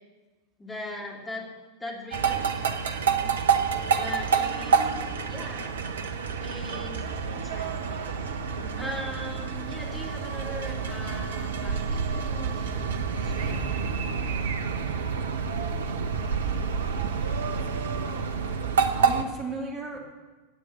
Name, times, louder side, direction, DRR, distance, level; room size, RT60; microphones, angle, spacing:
voice 1, 0.6-1.5 1.8-2.7 3.3-3.6 3.9-5.7 6.4-8.2 8.8-13.6, left 1 dB, 10° left, 0 dB, 2.6 m, -40 dB
sound 1, 2.1-19.2, right 6 dB, 65° right, 1.0 m, -28 dB
voice 2, 3.0-3.4 8.6-8.9 14.3-14.9 18.8-20.0, right 3 dB, 30° right, 1 dB, 2.7 m, -38 dB
16.0 x 9.0 x 7.7 m, 1.2 s
figure-of-eight pair, 90°, 0 cm